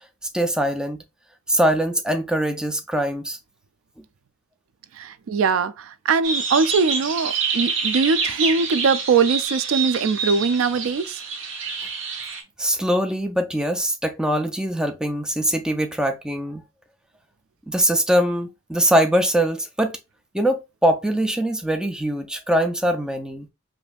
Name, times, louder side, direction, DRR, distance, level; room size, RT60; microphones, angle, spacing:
voice 1, 0.3-1.0 1.5-3.4 12.6-16.6 17.7-19.9 20.3-23.5, right 1 dB, 5° right, 0.3 m, -22 dB
voice 2, 5.0-11.2, right 5 dB, 85° right, 0.4 m, -21 dB
sound 1, 6.2-12.4, right 5 dB, 70° right, 0.9 m, -27 dB
5.0 x 2.6 x 2.3 m
head